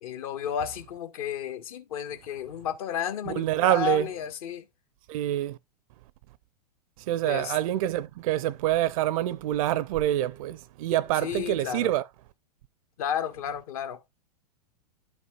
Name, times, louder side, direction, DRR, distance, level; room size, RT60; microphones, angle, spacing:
voice 1, 0.0-4.6 7.2-7.6 11.2-11.9 13.0-14.0, left 9 dB, 60° left, 1.5 m, -32 dB
voice 2, 3.3-4.1 5.1-5.6 7.1-12.0, right 13 dB, 55° right, 0.6 m, -26 dB
12.0 x 5.6 x 2.4 m
hypercardioid pair, 105°, 21 cm